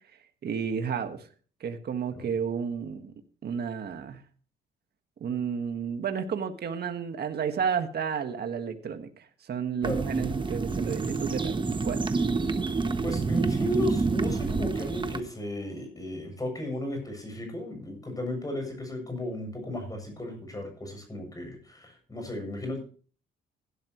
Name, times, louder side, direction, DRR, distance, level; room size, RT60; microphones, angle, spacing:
voice 1, 0.4-1.3 1.6-3.1 3.4-4.2 5.2-12.0, right 7 dB, 55° right, 7 dB, 1.6 m, -32 dB
sound 1, 9.8-15.2, right 4 dB, 25° right, 1.1 m, -28 dB
voice 2, 13.0-22.8, left 1 dB, 20° left, 4 dB, 7.4 m, -34 dB
16.0 x 12.0 x 3.1 m, 0.40 s
cardioid pair, 90°, 20 cm